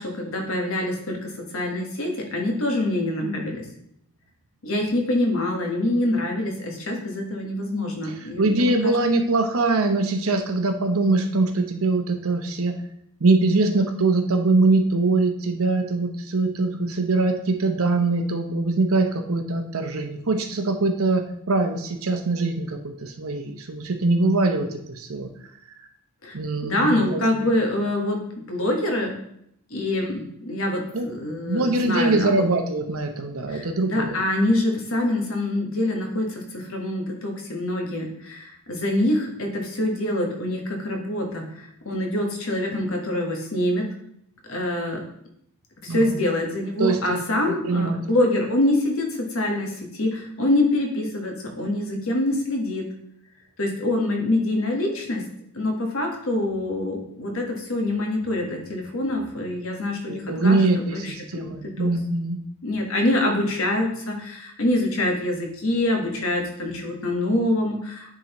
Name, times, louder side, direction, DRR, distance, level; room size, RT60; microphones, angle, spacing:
voice 1, 0.0-3.6 4.6-9.0 26.2-29.2 29.7-32.5 33.5-43.8 44.5-45.0 45.8-52.9 53.6-55.2 55.5-61.9 62.6-68.1, left 1 dB, 65° left, 1 dB, 1.4 m, -25 dB
voice 2, 8.4-12.7 13.2-25.3 26.3-27.4 30.9-31.1 31.5-34.2 45.9-46.2 46.8-47.2 47.5-48.0 60.1-62.4, right 3 dB, 70° right, 4 dB, 0.8 m, -23 dB
10.0 x 3.9 x 3.0 m, 0.71 s
head